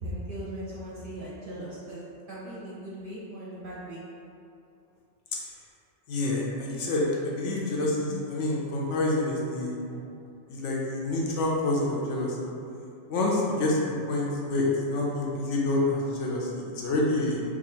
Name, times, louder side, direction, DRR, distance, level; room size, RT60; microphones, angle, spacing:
voice 1, 0.0-2.0 2.3-4.0 9.9-10.0, right 1 dB, 55° right, -7 dB, 0.7 m, -38 dB
voice 2, 6.1-9.8 10.5-12.5 13.1-13.8 14.1-17.4, left 2 dB, 80° left, -3 dB, 1.0 m, -27 dB
2.8 x 2.4 x 4.1 m, 2.6 s
omnidirectional pair, 1.2 m